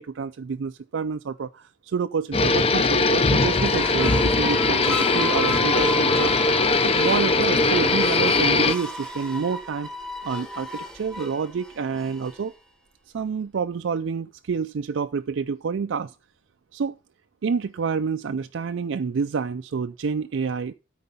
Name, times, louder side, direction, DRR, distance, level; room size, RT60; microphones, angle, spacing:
voice 1, 0.0-6.3 6.8-9.9 10.2-12.5 13.1-16.1 16.7-17.0 17.4-20.7, right 5 dB, 75° right, 0.4 m, -28 dB
sound 1, 2.3-8.8, left 3 dB, 30° left, 0.5 m, -20 dB
sound 2, 3.1-12.5, right 1 dB, 5° left, 1.0 m, -33 dB
12.5 x 4.7 x 5.4 m
head